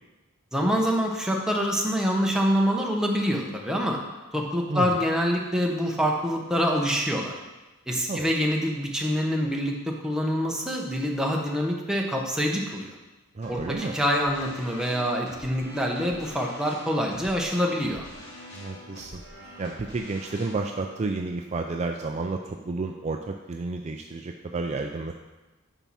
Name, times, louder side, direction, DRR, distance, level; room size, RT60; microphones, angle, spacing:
voice 1, 0.5-4.0 4.3-7.3 7.9-13.0 13.5-18.1, equal, 5° right, -1 dB, 1.0 m, -26 dB
voice 2, 13.3-14.0 18.5-19.2 19.6-25.1, right 3 dB, 35° right, 3 dB, 0.4 m, -31 dB
sound 1, 13.4-22.6, equal, 55° left, 3.0 m, -45 dB
9.0 x 6.0 x 4.2 m, 1.1 s
head